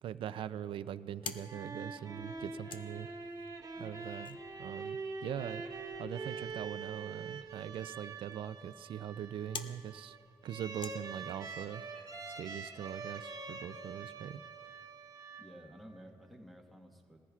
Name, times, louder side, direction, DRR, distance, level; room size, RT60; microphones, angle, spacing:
voice 1, 0.0-3.1 3.8-5.7 6.0-10.2 10.4-11.8 12.3-14.4, right 10 dB, 70° right, 14 dB, 0.4 m, -42 dB
sound 1, 1.0-11.8, left 6 dB, 60° left, 0.7 m, -52 dB
sound 2, 1.2-15.9, right 4 dB, 40° right, 1.0 m, -45 dB
voice 2, 3.7-4.0 15.4-17.2, equal, ahead, 0 dB, 1.5 m, -53 dB
21.0 x 14.5 x 2.4 m, 2.2 s
cardioid pair, 115°, 9 cm